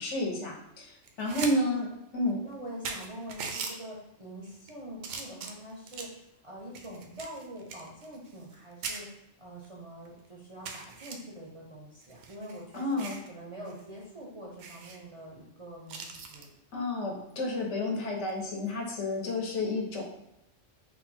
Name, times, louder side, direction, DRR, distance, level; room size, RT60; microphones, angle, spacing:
voice 1, 0.0-1.9 2.1-2.4 12.7-13.2 16.7-20.0, left 1 dB, 70° left, 0 dB, 1.2 m, -31 dB
sound 1, 1.0-1.5 1.9-2.0 2.5-2.6 2.8-3.7 4.4-4.7 5.0-6.2 6.7-8.6 8.8-9.0 9.6-9.7 10.0-10.1 10.6-11.1 12.0-13.3 13.7-13.8 14.1-14.2 14.6-15.0 15.9-16.5 18.2-18.4, right 5 dB, 80° right, 0.9 m, -40 dB
voice 2, 1.3-1.9 2.4-6.1 6.4-9.1 9.4-16.5, right 1 dB, 35° right, -5 dB, 0.5 m, -45 dB
4.0 x 2.2 x 4.1 m, 0.86 s
omnidirectional pair, 1.3 m